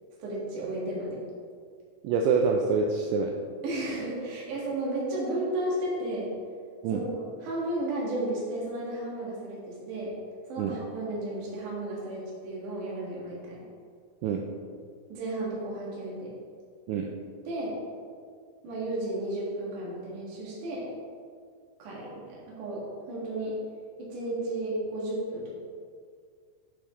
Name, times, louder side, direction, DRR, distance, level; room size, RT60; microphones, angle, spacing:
voice 1, 0.2-1.2 3.6-6.3 6.9-7.0 7.4-10.1 10.5-13.6 15.1-16.3 17.5-17.7 18.6-20.9 21.8-23.6 24.0-25.5, right 1 dB, 55° right, -5 dB, 2.5 m, -33 dB
voice 2, 2.0-3.3 6.8-7.0 10.6-10.7 14.2-14.4 16.9-17.1, right 5 dB, 85° right, 2 dB, 2.6 m, -26 dB
8.4 x 6.6 x 3.0 m, 2.1 s
omnidirectional pair, 5.7 m